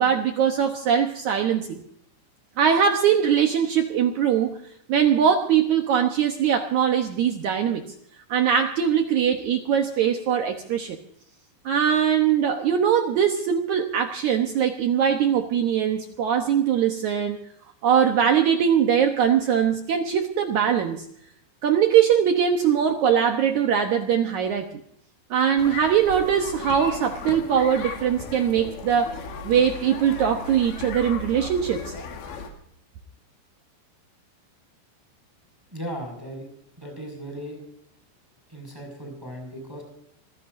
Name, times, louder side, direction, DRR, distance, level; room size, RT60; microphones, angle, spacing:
voice 1, 0.0-1.8 2.6-4.6 4.9-7.8 8.3-11.0 11.6-17.4 17.8-21.0 21.6-24.7 25.3-29.1 29.4-31.9, right 8 dB, 85° right, 4 dB, 1.6 m, -21 dB
sound 1, 25.6-32.5, left 4 dB, 90° left, 4.5 m, -36 dB
voice 2, 35.7-36.5 36.8-37.6 38.5-39.8, equal, 5° right, 2 dB, 5.6 m, -36 dB
26.5 x 16.0 x 2.6 m, 0.68 s
omnidirectional pair, 5.0 m